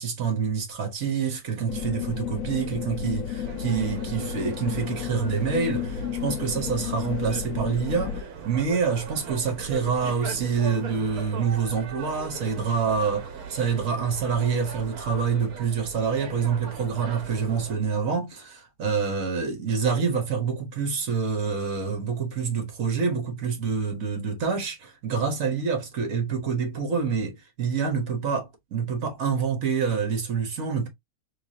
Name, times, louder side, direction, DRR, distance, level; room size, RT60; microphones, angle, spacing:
voice 1, 0.0-30.9, right 6 dB, 65° right, 1.6 m, -27 dB
sound 1, 1.7-8.2, left 9 dB, 70° left, 0.9 m, -32 dB
sound 2, 3.4-17.8, right 5 dB, 80° right, 1.3 m, -39 dB
3.8 x 3.2 x 2.8 m
omnidirectional pair, 1.5 m